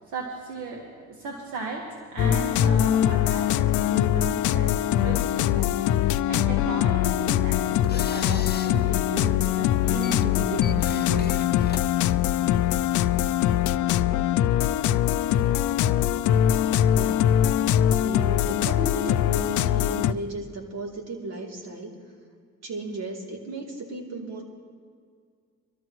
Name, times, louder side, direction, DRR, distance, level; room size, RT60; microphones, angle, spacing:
voice 1, 0.1-11.5, right 3 dB, 80° right, -1 dB, 1.8 m, -35 dB
sound 1, 2.2-20.1, left 11 dB, 75° left, 0.5 m, -22 dB
sound 2, 7.4-12.7, left 6 dB, 35° left, 0.8 m, -42 dB
voice 2, 16.9-17.3 17.9-21.9 22.6-24.4, right 2 dB, 60° right, -1 dB, 3.1 m, -35 dB
24.0 x 13.5 x 3.1 m, 2.1 s
cardioid pair, 90°, 30 cm